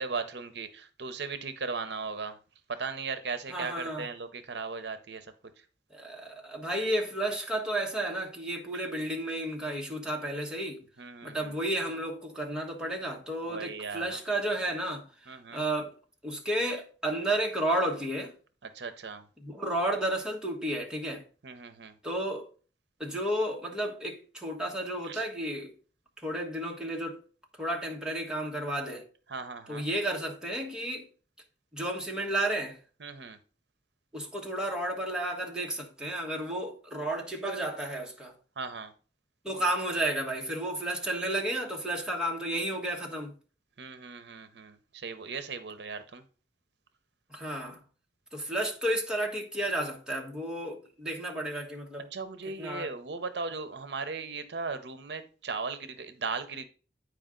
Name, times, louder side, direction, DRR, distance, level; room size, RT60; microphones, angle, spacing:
voice 1, 0.0-2.4 2.7-5.6 8.7-8.8 11.0-11.6 13.5-14.2 15.3-15.6 18.6-19.3 21.4-22.0 25.0-25.2 29.3-29.9 33.0-33.4 38.6-38.9 43.8-46.2 52.1-56.7, right 4 dB, 70° right, 0.7 m, -37 dB
voice 2, 3.5-4.0 5.9-10.8 11.2-15.9 16.2-18.3 19.4-21.2 22.0-22.5 23.0-25.7 26.2-27.2 27.6-29.0 29.7-31.0 31.7-32.8 34.1-38.3 39.4-43.3 47.3-47.8 48.3-52.1 52.6-52.9, right 1 dB, 5° right, 1.3 m, -32 dB
9.1 x 4.8 x 3.8 m
head